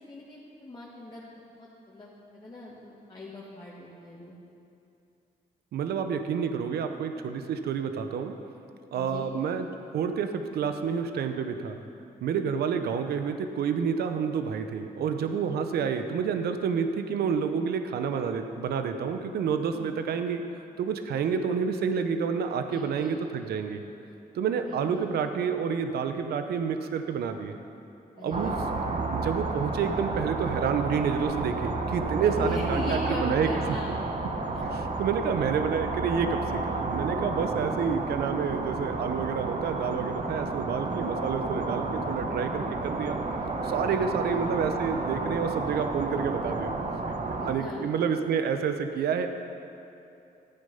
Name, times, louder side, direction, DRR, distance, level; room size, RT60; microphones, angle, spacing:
voice 1, 0.1-1.2 1.6-4.3 8.9-9.3 19.7-19.9 22.7-23.2 24.6-25.3 28.2-28.6 32.3-34.0 34.5-34.6 44.0-44.3 47.4-47.8, left 2 dB, 30° left, -6 dB, 2.1 m, -40 dB
voice 2, 5.7-8.3 8.9-9.7 9.9-11.8 12.2-23.8 24.3-27.6 28.2-28.5 29.1-33.5 34.6-43.2 43.6-46.7 47.1-49.3, right 6 dB, 85° right, 7 dB, 0.8 m, -29 dB
sound 1, 28.3-47.5, right 3 dB, 45° right, 1.2 m, -31 dB
14.0 x 9.0 x 5.6 m, 2.7 s
cardioid pair, 80°, 16 cm